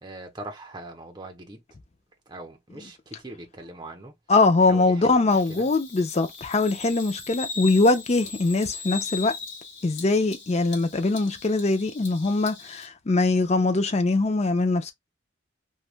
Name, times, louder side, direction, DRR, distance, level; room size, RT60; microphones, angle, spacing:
voice 1, 0.0-1.6 2.3-4.1 4.6-5.7, right 2 dB, 20° right, 0.7 m, -41 dB
voice 2, 4.3-9.3 9.8-14.9, left 3 dB, 35° left, 0.5 m, -22 dB
Bird vocalization bird call bird song, 5.3-12.9, left 5 dB, 60° left, 1.0 m, -39 dB
3.1 x 2.3 x 2.4 m
head